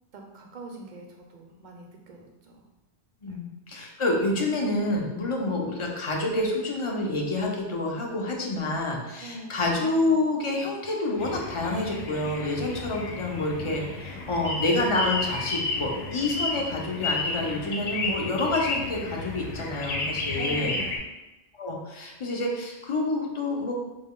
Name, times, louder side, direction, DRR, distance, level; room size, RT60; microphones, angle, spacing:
voice 1, 0.1-2.6 3.3-3.4 9.2-9.8 20.3-21.0, right 2 dB, 50° right, 1 dB, 0.7 m, -43 dB
voice 2, 3.2-20.7 21.6-23.7, left 2 dB, 35° left, 0 dB, 0.5 m, -28 dB
sound 1, 11.2-21.0, left 3 dB, 70° left, 0.8 m, -32 dB
5.1 x 2.2 x 3.6 m, 1.0 s
omnidirectional pair, 1.1 m